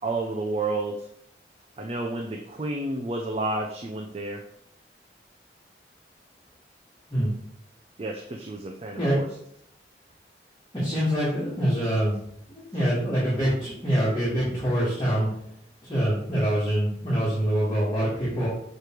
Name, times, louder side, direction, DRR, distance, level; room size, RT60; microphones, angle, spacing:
voice 1, 0.0-1.1 1.8-4.5 8.0-9.4, right 2 dB, 35° right, 2 dB, 0.5 m, -30 dB
voice 2, 10.7-12.2 12.5-15.3 15.8-18.5, equal, 20° left, -10 dB, 1.8 m, -25 dB
6.6 x 3.2 x 4.5 m, 0.73 s
head